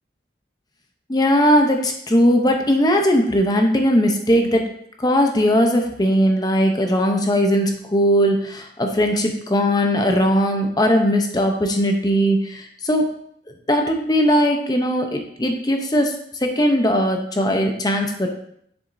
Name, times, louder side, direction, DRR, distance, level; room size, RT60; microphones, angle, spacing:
voice 1, 1.1-4.7 5.0-13.1 13.7-16.1 16.4-18.3, equal, 20° left, 3 dB, 0.7 m, -19 dB
7.0 x 6.9 x 2.6 m, 0.69 s
head